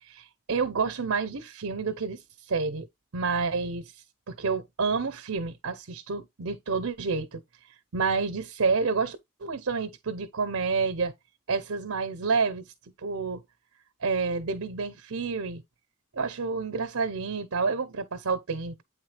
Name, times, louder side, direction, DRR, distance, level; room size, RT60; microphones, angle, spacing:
voice 1, 0.1-2.2 2.5-2.9 3.1-3.8 4.3-7.4 7.9-11.1 11.5-12.6 13.0-13.4 14.0-15.6 16.1-18.8, right 4 dB, 70° right, 0.7 m, -29 dB
8.6 x 3.6 x 3.3 m
head